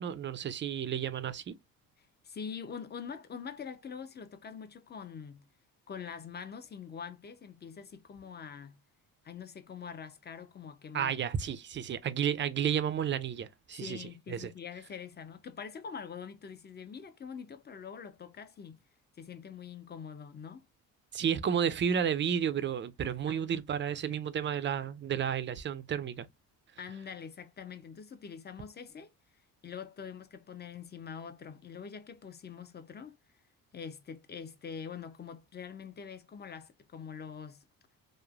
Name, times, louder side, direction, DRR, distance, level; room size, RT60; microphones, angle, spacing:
voice 1, 0.0-1.6 10.9-14.5 21.1-26.3, right 8 dB, 35° right, 0.4 m, -32 dB
voice 2, 2.2-5.5 5.9-8.8 9.2-11.1 13.7-18.8 19.2-20.7 23.3-23.4 26.8-29.1 29.6-33.2 33.7-37.6, left 6 dB, 30° left, 0.5 m, -44 dB
3.1 x 2.1 x 2.3 m
cardioid pair, 90°, 36 cm